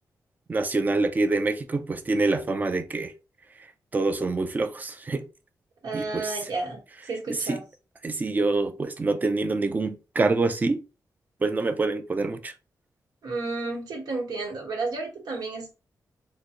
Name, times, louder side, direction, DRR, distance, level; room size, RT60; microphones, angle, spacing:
voice 1, 0.5-3.1 3.9-5.2 5.9-6.5 7.3-7.6 8.0-10.8 11.4-12.5, right 3 dB, 25° right, 0.4 m, -26 dB
voice 2, 5.8-6.8 7.1-7.6 13.2-15.7, right 3 dB, 85° right, 1.4 m, -31 dB
3.7 x 2.2 x 2.9 m
wide cardioid pair, 135°, 7 cm